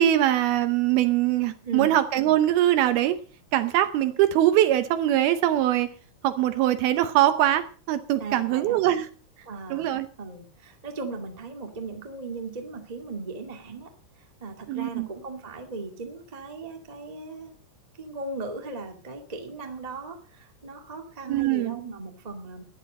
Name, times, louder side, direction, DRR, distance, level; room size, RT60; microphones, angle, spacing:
voice 1, 0.0-3.2 3.5-5.9 6.2-9.1 9.7-10.1 14.7-15.1 21.3-21.8, right 12 dB, 75° right, 11 dB, 2.4 m, -22 dB
voice 2, 1.6-2.0 8.2-8.8 9.4-13.9 14.4-17.5 18.0-22.6, right 3 dB, 25° right, 3 dB, 0.8 m, -37 dB
14.5 x 10.5 x 5.3 m, 0.38 s
omnidirectional pair, 4.9 m